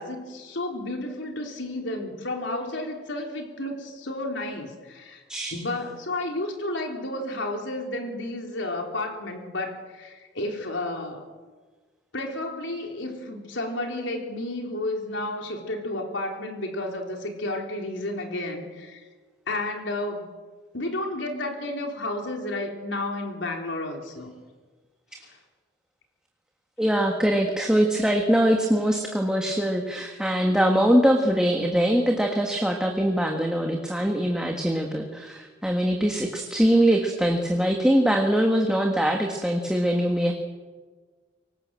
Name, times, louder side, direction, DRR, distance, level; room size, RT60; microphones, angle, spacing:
voice 1, 0.0-5.2 5.5-11.2 12.1-19.0 19.5-20.2 20.7-24.3, left 1 dB, 80° left, 2 dB, 3.8 m, -32 dB
voice 2, 26.8-40.3, equal, 5° right, 1 dB, 1.7 m, -22 dB
23.5 x 19.5 x 7.7 m, 1.4 s
head